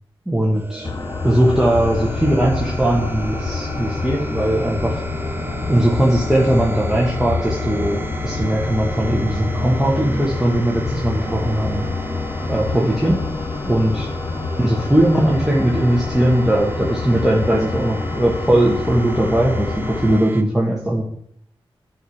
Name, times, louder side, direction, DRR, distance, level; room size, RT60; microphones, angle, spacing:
voice 1, 0.3-0.9 1.2-5.0 5.7-11.9 12.5-13.2 13.6-14.1 14.6-21.0, right 1 dB, 5° right, -3 dB, 1.4 m, -19 dB
sound 1, 0.5-20.4, right 2 dB, 20° right, 0.6 m, -32 dB
sound 2, 0.8-20.2, left 5 dB, 35° left, 0.3 m, -27 dB
9.1 x 4.8 x 5.9 m, 0.67 s
wide cardioid pair, 110°, 10 cm